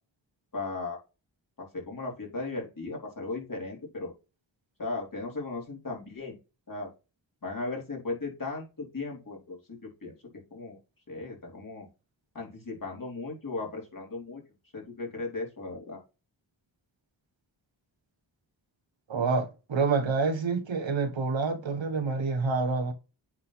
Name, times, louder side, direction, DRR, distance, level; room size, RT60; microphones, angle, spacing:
voice 1, 0.5-1.0 1.6-4.1 4.8-6.4 6.7-6.9 7.4-10.1 10.5-10.8 11.1-11.9 12.3-14.4 14.7-16.0, left 3 dB, 45° left, 4.0 m, -36 dB
voice 2, 19.1-22.9, right 4 dB, 75° right, 1.6 m, -27 dB
8.7 x 3.9 x 4.1 m
wide cardioid pair, 80°, 46 cm